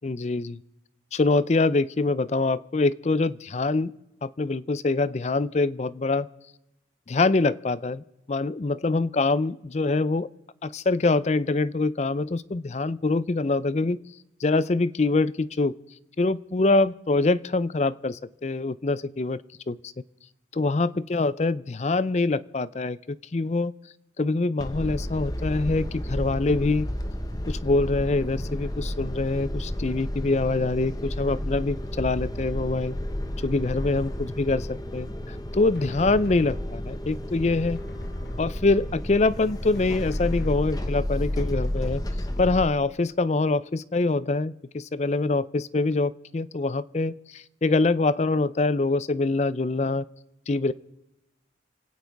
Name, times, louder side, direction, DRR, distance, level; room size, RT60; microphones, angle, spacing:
voice 1, 0.0-0.6 1.1-3.9 4.2-6.3 7.1-10.3 10.6-14.0 14.4-15.7 16.2-19.4 19.7-19.9 20.5-23.7 24.2-26.9 27.4-32.9 33.4-37.8 38.4-42.0 42.4-50.0 50.5-50.7, left 3 dB, 35° left, 17 dB, 0.5 m, -24 dB
sound 1, 24.6-42.6, left 1 dB, 20° left, 0.9 m, -32 dB
Drum, 35.3-37.2 37.7-39.1 39.7-41.3, left 1 dB, 60° left, 1.4 m, -45 dB
28.0 x 9.4 x 4.7 m, 0.92 s
head